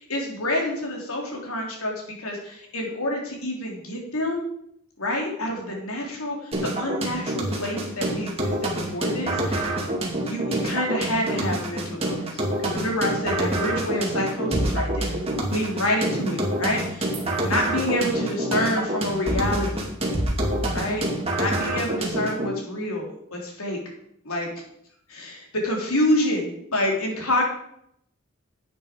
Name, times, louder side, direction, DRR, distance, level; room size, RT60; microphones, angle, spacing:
voice 1, 0.0-1.9 2.2-4.4 5.0-9.7 10.1-15.1 15.5-17.1 17.4-19.8 20.7-21.1 21.3-23.8 24.2-24.6 25.1-27.4, left 1 dB, 85° left, 0 dB, 3.4 m, -27 dB
sound 1, 6.5-22.5, right 1 dB, 30° right, 2.4 m, -27 dB
10.5 x 8.9 x 5.2 m, 0.72 s
head